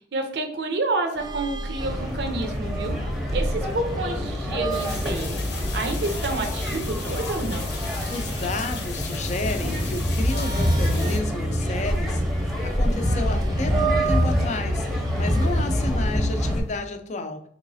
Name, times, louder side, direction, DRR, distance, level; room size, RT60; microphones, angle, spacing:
voice 1, 0.1-3.0 3.3-7.7, right 2 dB, 65° right, 5 dB, 0.6 m, -29 dB
sound 1, 1.2-16.8, right 4 dB, 25° right, 0.3 m, -35 dB
sound 2, 1.8-16.6, equal, ahead, 0.7 m, -26 dB
sound 3, 4.7-11.2, left 5 dB, 75° left, 0.7 m, -38 dB
voice 2, 8.1-17.4, left 2 dB, 40° left, 7 dB, 0.4 m, -32 dB
3.9 x 3.0 x 2.7 m, 0.63 s
head